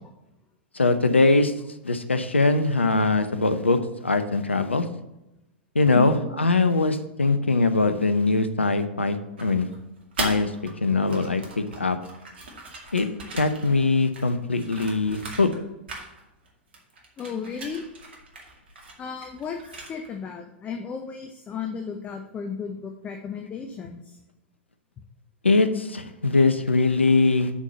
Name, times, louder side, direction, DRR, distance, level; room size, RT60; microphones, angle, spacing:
voice 1, 0.8-1.5 1.8-4.8 5.7-9.7 10.2-10.5 10.8-12.0 12.9-13.1 13.3-15.5 25.4-27.5, left 3 dB, 85° left, 10 dB, 0.8 m, -22 dB
voice 2, 5.9-6.3 17.2-17.8 19.0-24.2, left 6 dB, 25° left, 4 dB, 0.8 m, -34 dB
sound 1, 9.4-10.7 11.0-15.6 15.9-16.5 16.7-20.2, right 2 dB, 65° right, 2.2 m, -39 dB
6.2 x 5.6 x 6.8 m, 0.94 s
figure-of-eight pair, 100°, 6 cm